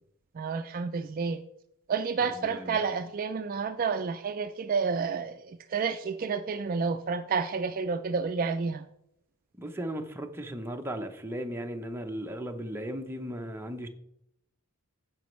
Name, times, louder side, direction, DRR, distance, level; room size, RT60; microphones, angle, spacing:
voice 1, 0.4-1.4 1.9-8.8, right 5 dB, 40° right, 9 dB, 0.3 m, -30 dB
voice 2, 2.3-2.8 9.6-13.9, equal, 10° right, 4 dB, 0.7 m, -36 dB
14.5 x 5.2 x 3.1 m, 0.79 s
head